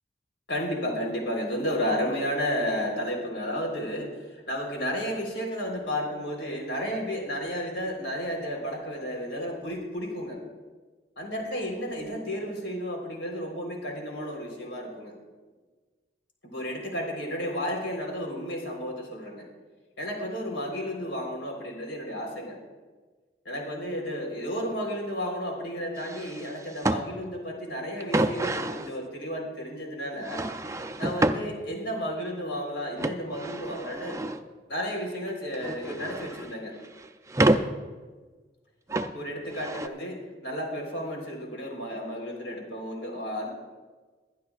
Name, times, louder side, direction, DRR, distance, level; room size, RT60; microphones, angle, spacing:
voice 1, 0.5-10.4 11.2-15.1 16.4-19.5 20.0-22.6 23.5-30.4 31.0-34.2 34.7-36.7 39.1-43.5, equal, 85° left, 0 dB, 3.8 m, -32 dB
sound 1, 26.0-27.0 28.0-28.9 30.2-31.4 33.0-34.4 35.3-36.5 36.8-37.7 38.9-39.1 39.5-39.9, right 1 dB, 15° right, 0.4 m, -28 dB
21.5 x 11.5 x 2.4 m, 1.3 s
head